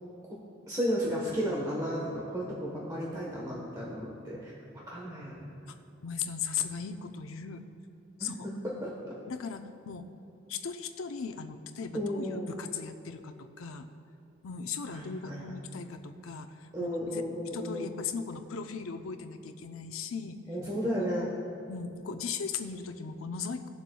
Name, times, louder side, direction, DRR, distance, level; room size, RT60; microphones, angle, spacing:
voice 1, 0.7-4.5 4.9-5.5 8.2-8.9 11.9-12.5 14.9-15.5 16.7-18.0 20.5-21.3, equal, 20° right, -4 dB, 1.1 m, -33 dB
voice 2, 6.0-7.6 8.2-8.5 9.3-10.1 10.5-13.9 14.4-17.2 17.5-20.4 21.0-21.3 21.7-23.6, left 6 dB, 90° left, 7 dB, 0.6 m, -38 dB
19.0 x 7.1 x 2.3 m, 2.8 s
head